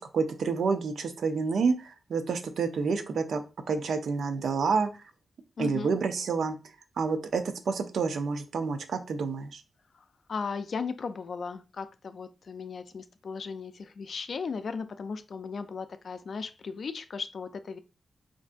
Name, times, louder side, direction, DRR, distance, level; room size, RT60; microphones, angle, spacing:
voice 1, 0.0-3.4 3.7-4.9 5.6-6.6 7.0-9.6, right 5 dB, 85° right, 7 dB, 0.5 m, -28 dB
voice 2, 5.6-5.9 9.9-17.8, left 5 dB, 65° left, 10 dB, 0.4 m, -36 dB
4.5 x 2.6 x 2.4 m, 0.31 s
wide cardioid pair, 95°, 0 cm